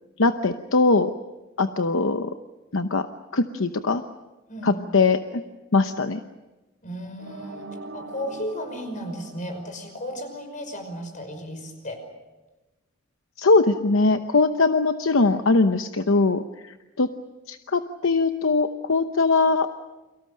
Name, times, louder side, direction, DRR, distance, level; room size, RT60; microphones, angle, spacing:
voice 1, 0.2-1.1 1.6-2.3 2.7-3.1 3.3-4.0 4.6-5.4 5.7-6.2 13.4-17.1 17.5-19.7, left 3 dB, 70° left, 8 dB, 0.9 m, -21 dB
voice 2, 4.5-4.8 6.8-12.0, equal, 40° left, 6 dB, 5.6 m, -34 dB
sound 1, 7.2-10.2, right 2 dB, 70° right, 4.2 m, -42 dB
30.0 x 24.0 x 6.5 m, 1.1 s
head